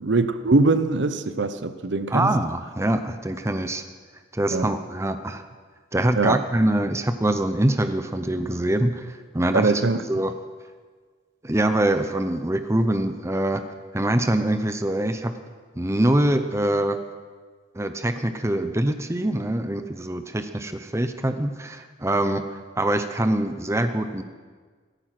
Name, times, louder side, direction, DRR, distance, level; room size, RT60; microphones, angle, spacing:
voice 1, 0.0-2.4 4.5-4.7 6.2-6.4 9.5-10.0, right 3 dB, 75° right, 12 dB, 0.8 m, -22 dB
voice 2, 2.1-3.8 4.3-5.4 5.9-9.7 10.1-10.3 11.4-13.6 13.9-15.3 15.8-17.0 17.7-24.2, right 1 dB, 15° right, 9 dB, 0.7 m, -24 dB
16.5 x 14.0 x 6.0 m, 1.5 s
head